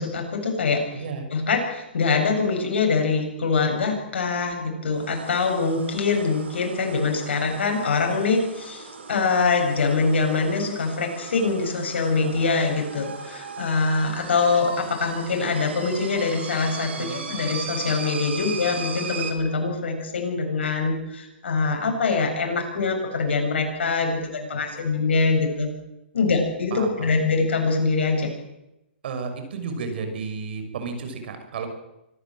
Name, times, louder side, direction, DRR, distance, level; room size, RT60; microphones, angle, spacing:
voice 1, 0.0-0.8 1.3-25.7 26.1-28.3, left 4 dB, 75° left, 3 dB, 7.4 m, -24 dB
voice 2, 0.9-1.3 17.0-17.4 24.5-24.6 26.7-27.2 29.0-31.7, right 4 dB, 60° right, 7 dB, 6.0 m, -33 dB
sound 1, 5.0-19.3, right 5 dB, 85° right, 4.4 m, -38 dB
25.0 x 14.5 x 7.9 m, 0.89 s
hypercardioid pair, 140°, 6 cm